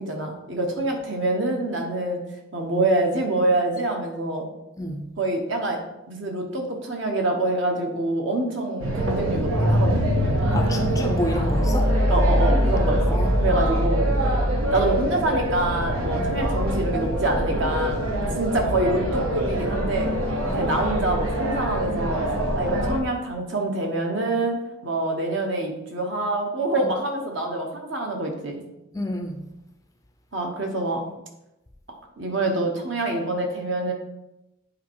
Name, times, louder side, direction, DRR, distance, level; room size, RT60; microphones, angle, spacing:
voice 1, 0.0-2.2 2.5-4.5 5.2-5.8 6.1-10.0 12.1-14.0 14.7-18.1 18.4-20.1 20.6-22.2 22.5-24.6 24.8-28.6 30.3-31.0 32.2-33.9, right 2 dB, 60° right, 2 dB, 1.4 m, -26 dB
sound 1, 8.8-23.0, equal, 85° right, 1.3 m, -23 dB
voice 2, 10.5-11.9 13.1-13.5 16.2-16.3 18.2-18.4 20.5-20.6 26.8-26.9 28.9-29.4, left 1 dB, 15° left, 5 dB, 0.5 m, -30 dB
8.3 x 4.3 x 4.6 m, 0.92 s
head